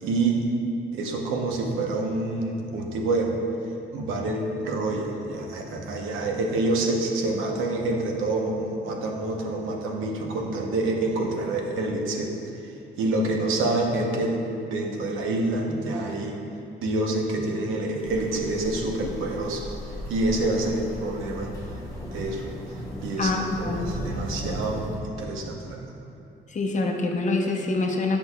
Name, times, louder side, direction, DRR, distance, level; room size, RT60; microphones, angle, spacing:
voice 1, 0.0-0.4 0.9-3.4 3.9-12.3 12.6-16.3 16.8-19.8 20.1-21.5 22.1-23.3 23.6-25.9, right 2 dB, 90° right, 0 dB, 0.8 m, -27 dB
sound 1, 18.0-25.0, equal, 15° left, 1.2 m, -36 dB
voice 2, 23.2-23.9 26.5-28.2, left 3 dB, 40° left, 2 dB, 0.7 m, -25 dB
7.9 x 6.1 x 2.3 m, 2.8 s
cardioid pair, 90°, 20 cm